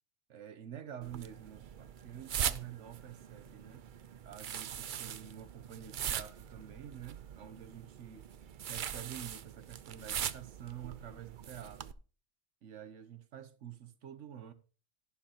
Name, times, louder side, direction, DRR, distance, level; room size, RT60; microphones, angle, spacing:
voice 1, 0.3-3.9 4.2-8.3 8.7-11.9 12.6-14.5, right 10 dB, 80° right, 1.2 m, -48 dB
sound 1, 1.0-11.9, right 9 dB, 55° right, 0.6 m, -41 dB
11.5 x 11.5 x 2.9 m
omnidirectional pair, 1.2 m